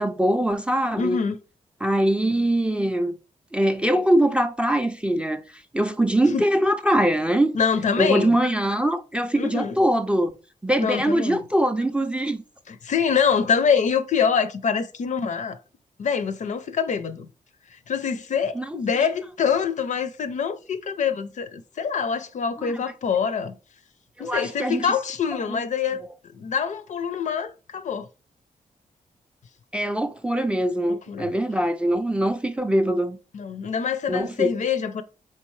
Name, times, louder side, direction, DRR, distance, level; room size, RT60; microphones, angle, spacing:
voice 1, 0.0-1.2 1.8-3.2 3.5-5.4 5.7-7.6 8.0-10.3 10.6-12.4 18.5-18.8 22.6-22.8 24.2-24.9 25.5-25.6 29.7-33.2 34.1-34.5, right 1 dB, 10° right, 0.3 m, -22 dB
voice 2, 1.0-1.4 6.3-6.4 7.5-8.4 9.4-9.8 10.8-11.4 12.7-15.6 16.0-17.3 17.9-23.6 24.2-28.1 30.9-31.3 33.3-35.0, left 6 dB, 60° left, 0.5 m, -25 dB
4.5 x 3.3 x 3.1 m
wide cardioid pair, 110°, 14 cm